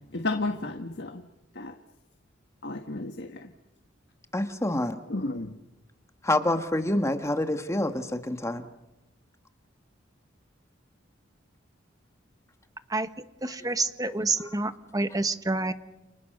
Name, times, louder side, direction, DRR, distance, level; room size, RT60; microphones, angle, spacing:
voice 1, 0.1-1.2 1.5-1.7 2.6-3.5 5.1-5.6, left 2 dB, 60° left, 5 dB, 1.5 m, -32 dB
voice 2, 4.3-5.0 6.2-8.6, left 1 dB, 15° left, 7 dB, 1.6 m, -27 dB
voice 3, 13.4-15.7, right 2 dB, 20° right, 10 dB, 1.3 m, -28 dB
29.5 x 29.5 x 6.7 m, 1.0 s
head